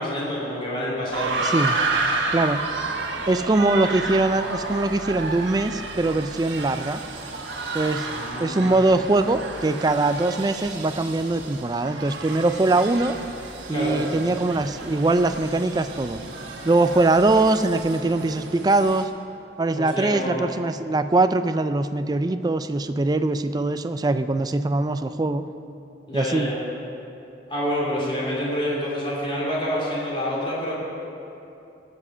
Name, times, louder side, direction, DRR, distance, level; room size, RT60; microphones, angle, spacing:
voice 1, 0.0-1.3 8.1-8.8 13.7-14.0 19.7-20.5 26.1-26.5 27.5-30.7, equal, 30° left, -6 dB, 3.1 m, -27 dB
sound 1, 1.1-19.0, right 3 dB, 85° right, 1.3 m, -31 dB
voice 2, 1.4-1.8 2.3-2.6 3.3-7.0 7.7-8.1 8.4-13.2 13.7-16.2 16.6-19.1 19.6-25.4 26.1-26.5, right 2 dB, 20° right, 10 dB, 0.3 m, -22 dB
17.0 x 7.2 x 5.6 m, 2.8 s
head